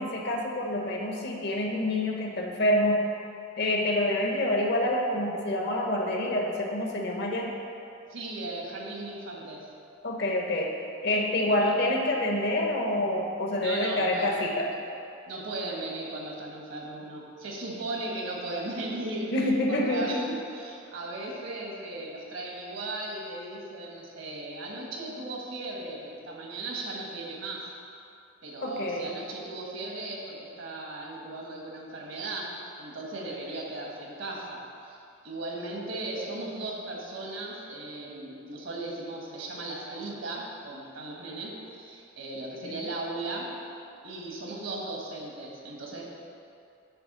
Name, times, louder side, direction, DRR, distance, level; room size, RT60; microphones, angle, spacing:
voice 1, 0.0-3.0 3.6-7.5 10.0-10.7 11.0-14.7 19.3-20.2 28.6-29.1 42.6-42.8, left 1 dB, 55° left, 0 dB, 1.0 m, -27 dB
voice 2, 8.1-9.7 13.6-14.3 15.3-19.3 19.7-27.7 28.4-43.5 44.0-46.0, right 2 dB, 75° right, -2 dB, 1.4 m, -37 dB
8.7 x 3.3 x 6.6 m, 2.6 s
head